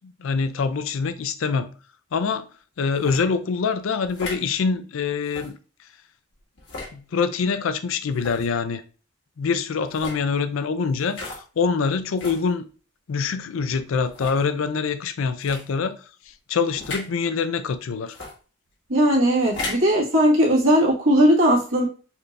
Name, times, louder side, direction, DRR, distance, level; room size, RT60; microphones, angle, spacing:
voice 1, 0.0-1.7 2.1-2.5 2.8-5.5 6.9-8.8 9.4-12.6 13.1-16.0 16.3-18.2, left 5 dB, 85° left, 0.4 m, -25 dB
sound 1, 2.9-3.2 4.0-4.4 5.2-5.5 6.6-6.9 8.1-8.5 9.8-10.2 11.1-11.4 12.2-12.4 13.1-13.2 14.1-14.4 15.4-15.6 16.8-17.1 18.1-18.3 19.4-19.9, left 3 dB, 65° left, 1.4 m, -35 dB
voice 2, 18.9-21.9, equal, 80° right, 1.7 m, -18 dB
4.3 x 2.5 x 3.2 m
head